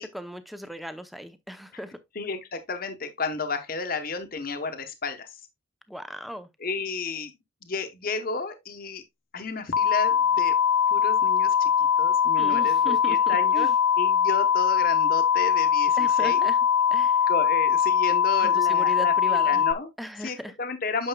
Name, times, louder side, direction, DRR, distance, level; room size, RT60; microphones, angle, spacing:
voice 1, 0.0-2.0 5.9-6.5 12.4-13.7 16.0-16.6 16.9-17.3 18.4-19.6 20.0-20.5, equal, ahead, 0.6 m, -38 dB
voice 2, 2.1-5.4 6.6-7.3 7.6-9.0 9.3-10.6 10.9-11.7 12.0-13.7 14.0-16.5 17.3-19.9 20.2-21.1, left 4 dB, 45° left, 1.0 m, -32 dB
sound 1, 9.7-19.7, left 8 dB, 85° left, 0.5 m, -22 dB
9.0 x 6.2 x 2.2 m
head